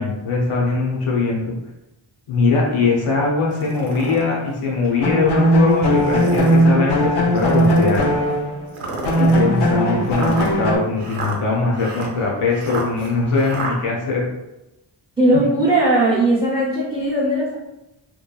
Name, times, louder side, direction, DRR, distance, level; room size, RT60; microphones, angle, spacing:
voice 1, 0.0-1.5 2.3-8.1 9.2-14.3, left 4 dB, 90° left, -2 dB, 0.7 m, -21 dB
sound 1, 3.5-4.2 4.9-5.0 6.0-6.7 7.4-8.1 8.8-13.7, right 3 dB, 85° right, 0.7 m, -30 dB
sound 2, 5.0-8.7 9.0-10.8, equal, 55° left, 0.5 m, -18 dB
voice 2, 15.2-17.6, right 1 dB, 10° right, -7 dB, 0.6 m, -18 dB
3.0 x 2.3 x 2.2 m, 0.94 s
wide cardioid pair, 100°, 50 cm